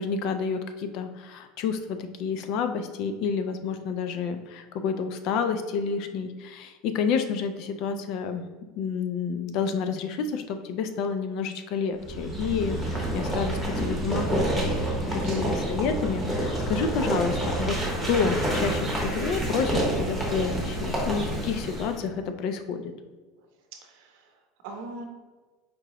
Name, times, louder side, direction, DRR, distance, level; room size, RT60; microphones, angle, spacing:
voice 1, 0.0-8.4 8.8-17.8 18.1-22.9, left 6 dB, 45° left, 8 dB, 0.3 m, -29 dB
sound 1, 12.0-22.0, right 1 dB, ahead, 0.8 m, -28 dB
voice 2, 23.8-25.1, right 2 dB, 65° right, 4 dB, 0.7 m, -41 dB
4.6 x 2.9 x 2.9 m, 1.3 s
cardioid pair, 175°, 0 cm